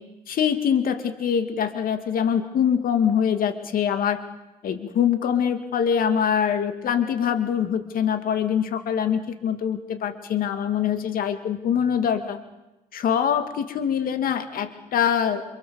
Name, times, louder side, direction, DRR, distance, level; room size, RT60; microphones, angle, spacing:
voice 1, 0.3-4.2 4.6-12.4 12.9-15.4, left 8 dB, 60° left, 8 dB, 2.5 m, -24 dB
29.0 x 27.5 x 7.2 m, 1.0 s
cardioid pair, 110°, 17 cm